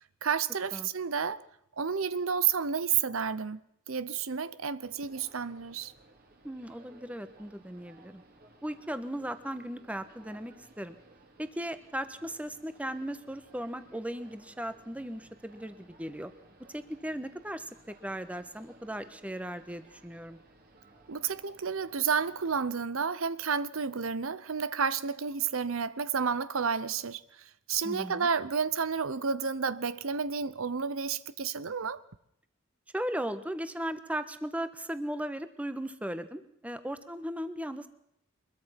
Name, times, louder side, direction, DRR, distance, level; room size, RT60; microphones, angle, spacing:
voice 1, 0.2-1.4 1.8-3.6 3.9-5.9 21.1-32.0, right 6 dB, 85° right, 0.8 m, -31 dB
sound 1, 4.8-22.7, right 2 dB, 45° right, 3.7 m, -58 dB
voice 2, 6.4-8.2 8.6-11.0 11.4-16.3 16.7-20.4 27.8-28.3 32.9-37.9, equal, 5° right, 1.3 m, -37 dB
24.0 x 22.0 x 5.9 m
head